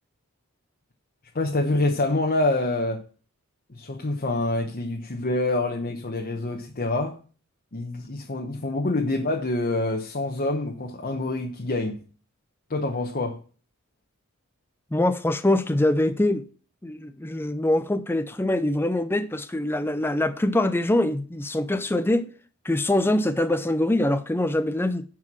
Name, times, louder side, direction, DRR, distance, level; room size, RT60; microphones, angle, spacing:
voice 1, 1.3-3.0 3.7-7.2 7.7-12.0 12.7-13.4, left 2 dB, 40° left, 1.0 m, -26 dB
voice 2, 14.9-16.4 16.8-22.3 22.6-25.0, left 1 dB, 10° left, 0.5 m, -24 dB
9.6 x 4.7 x 6.0 m
head